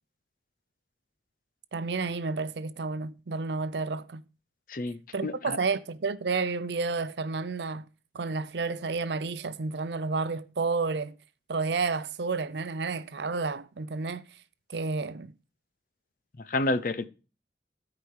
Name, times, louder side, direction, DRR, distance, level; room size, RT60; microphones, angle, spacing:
voice 1, 1.7-4.2 5.1-7.9 8.1-11.1 11.5-14.2 14.7-15.3, right 4 dB, 75° right, 0.6 m, -31 dB
voice 2, 4.7-5.6 16.5-17.1, left 2 dB, 50° left, 0.6 m, -29 dB
12.5 x 4.9 x 4.6 m
head